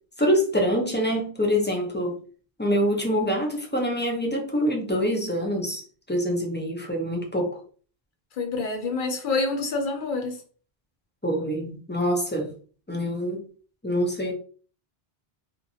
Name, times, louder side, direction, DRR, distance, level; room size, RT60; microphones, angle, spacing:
voice 1, 0.2-2.2 2.6-5.8 6.1-7.6 11.2-12.5 12.9-13.4 13.8-14.3, equal, 15° left, 0.5 m, -25 dB
voice 2, 8.3-10.4, left 3 dB, 55° left, 0.8 m, -27 dB
2.6 x 2.5 x 2.7 m
omnidirectional pair, 1.0 m